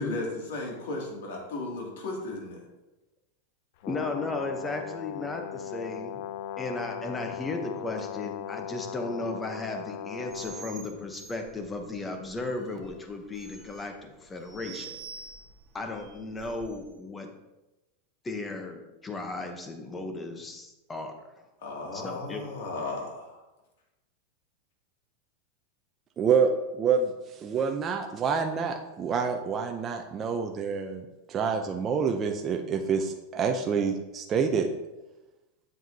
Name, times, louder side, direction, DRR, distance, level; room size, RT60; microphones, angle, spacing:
voice 1, 0.0-2.6 21.6-23.4, left 2 dB, 75° left, -1 dB, 2.3 m, -35 dB
Brass instrument, 3.8-10.8, left 10 dB, 55° left, 0.4 m, -38 dB
voice 2, 3.9-6.2 6.6-14.9 15.7-17.3 18.2-21.1 21.9-22.4, left 2 dB, 10° left, 5 dB, 0.8 m, -35 dB
sound 1, 10.3-16.9, right 6 dB, 5° right, 1.9 m, -48 dB
voice 3, 26.2-27.1 27.4-31.0 31.3-34.7, right 6 dB, 20° right, 3 dB, 0.5 m, -27 dB
7.6 x 7.5 x 2.7 m, 1.0 s
supercardioid pair, 165°, 0 cm